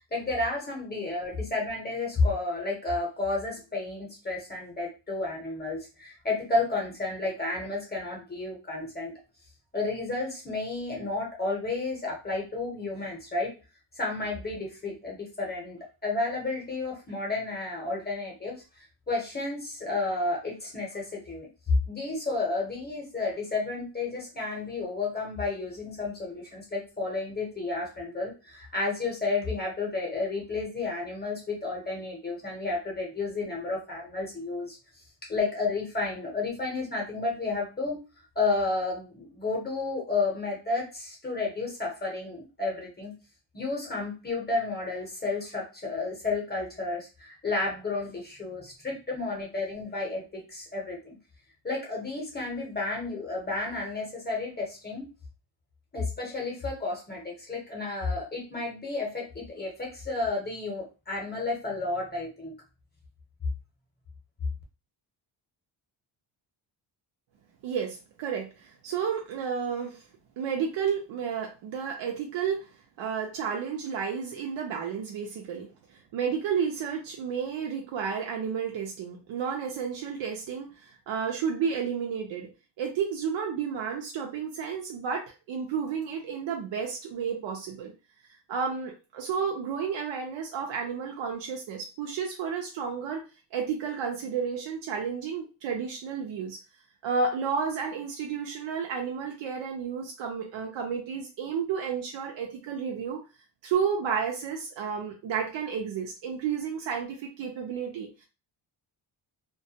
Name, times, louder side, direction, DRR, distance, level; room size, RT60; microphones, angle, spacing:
voice 1, 0.1-9.1 9.7-13.5 13.9-35.0 35.3-38.0 38.4-43.1 43.5-51.2 51.6-55.1 55.9-62.5, left 3 dB, 20° left, -2 dB, 0.7 m, -31 dB
voice 2, 67.6-70.0 70.4-72.7 73.0-82.5 82.8-87.9 88.5-93.2 93.5-96.6 97.0-103.2 103.6-108.2, right 6 dB, 70° right, 1 dB, 0.6 m, -31 dB
2.2 x 2.2 x 2.7 m, 0.31 s
wide cardioid pair, 165°, 47 cm